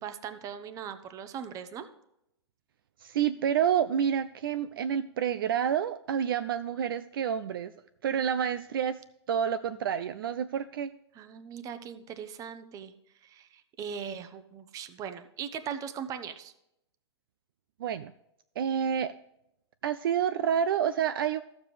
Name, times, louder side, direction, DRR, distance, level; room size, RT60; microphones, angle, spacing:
voice 1, 0.0-1.9 11.1-12.9 13.2-16.5, right 8 dB, 25° right, 10 dB, 0.8 m, -39 dB
voice 2, 3.0-7.7 8.0-9.0 9.3-10.9 17.8-18.1 18.6-19.1 19.8-21.4, right 8 dB, 55° right, 12 dB, 0.4 m, -28 dB
13.5 x 7.2 x 3.2 m, 0.82 s
figure-of-eight pair, 110°, 14 cm